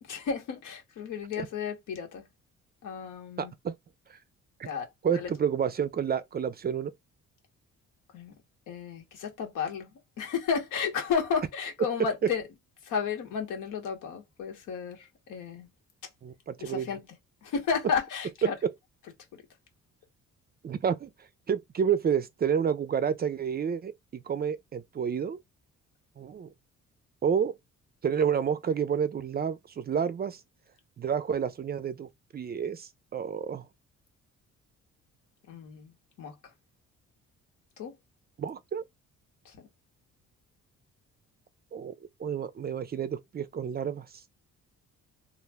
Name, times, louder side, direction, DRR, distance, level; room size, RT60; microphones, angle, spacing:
voice 1, 0.0-2.3 2.8-3.5 4.6-5.3 8.1-8.3 8.7-9.9 10.2-12.4 12.8-15.7 16.6-17.0 17.4-18.5 35.5-35.9 36.2-36.3 37.8-37.9 39.4-39.6, left 6 dB, 85° left, 1.2 m, -32 dB
voice 2, 3.4-3.7 4.6-4.7 5.0-6.9 12.2-12.3 16.2-16.9 18.4-18.7 20.6-21.1 21.5-25.4 26.2-26.5 27.2-27.5 28.0-30.4 31.0-33.7 38.4-38.8 41.7-44.1, right 7 dB, 35° right, 0.4 m, -29 dB
2.4 x 2.1 x 3.3 m
cardioid pair, 90°, 30 cm